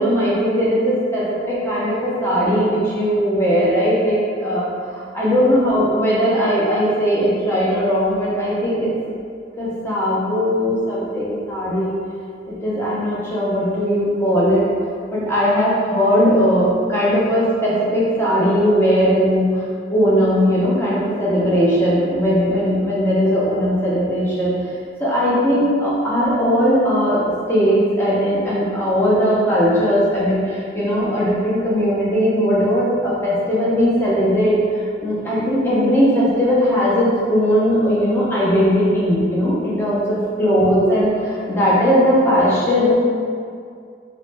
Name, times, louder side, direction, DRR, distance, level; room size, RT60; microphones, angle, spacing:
voice 1, 0.0-8.9 9.6-11.9 12.5-14.7 15.1-19.6 19.9-24.5 25.0-42.9, equal, 10° left, -8 dB, 0.6 m, -18 dB
3.0 x 2.0 x 3.2 m, 2.2 s
head